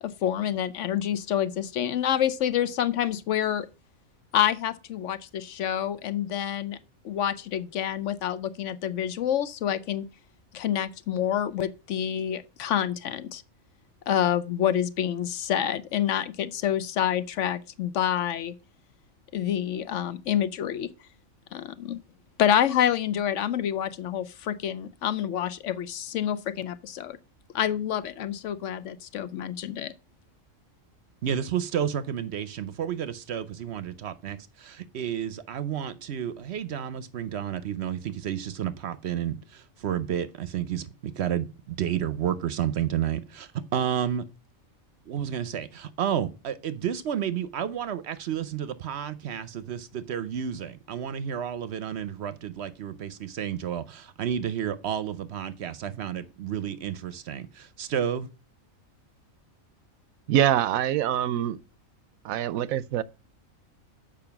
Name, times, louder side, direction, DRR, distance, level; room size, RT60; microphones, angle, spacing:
voice 1, 0.0-3.7 4.3-6.8 7.0-10.0 10.5-13.4 14.1-18.5 19.3-20.9 21.5-22.0 22.4-27.2 27.5-29.9, left 10 dB, 70° left, 0.9 m, -27 dB
voice 2, 31.2-44.2 45.1-58.3, right 9 dB, 60° right, 0.8 m, -31 dB
voice 3, 60.3-61.6 62.2-63.0, right 11 dB, 85° right, 1.0 m, -24 dB
7.1 x 5.1 x 5.7 m
omnidirectional pair, 1.4 m